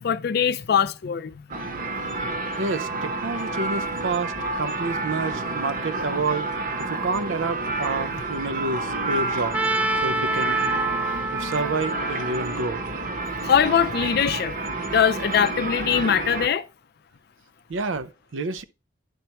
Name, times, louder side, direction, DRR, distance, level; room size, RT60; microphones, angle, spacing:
voice 1, 0.0-1.5 13.4-16.7, left 8 dB, 55° left, 0.4 m, -22 dB
sound 1, 1.5-16.5, right 3 dB, 45° right, 1.0 m, -29 dB
voice 2, 2.6-6.5 6.9-9.6 10.0-10.6 11.3-12.8 17.7-18.6, right 3 dB, 80° right, 0.6 m, -29 dB
Trumpet, 9.5-13.6, right 2 dB, 5° right, 0.4 m, -28 dB
10.5 x 4.5 x 2.9 m
head